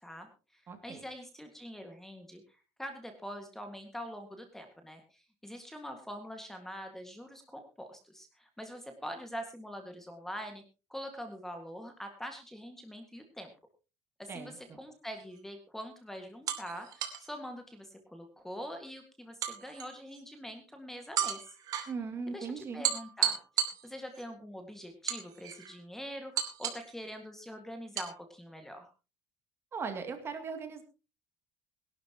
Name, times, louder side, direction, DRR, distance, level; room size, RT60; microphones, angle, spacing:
voice 1, 0.0-10.6 10.9-13.5 14.2-21.6 22.3-28.9, equal, 5° left, 5 dB, 1.8 m, -44 dB
voice 2, 0.7-1.0 14.3-14.8 21.9-22.8 29.7-30.8, right 5 dB, 30° right, 6 dB, 2.5 m, -39 dB
sound 1, 15.2-15.4 16.5-17.3 19.4-20.2 21.2-21.9 22.8-24.2 25.1-25.7 26.4-26.9 28.0-28.1, right 9 dB, 50° right, 2.6 m, -34 dB
21.5 x 12.0 x 2.9 m, 0.32 s
cardioid pair, 140°, 8 cm